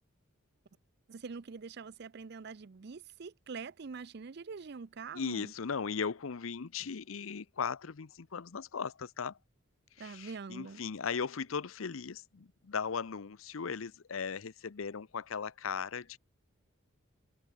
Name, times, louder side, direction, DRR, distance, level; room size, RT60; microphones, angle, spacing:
voice 1, 1.1-5.5 10.0-10.8, right 5 dB, 55° right, 0.5 m, -44 dB
voice 2, 5.1-9.4 10.0-16.2, left 6 dB, 85° left, 0.7 m, -37 dB
head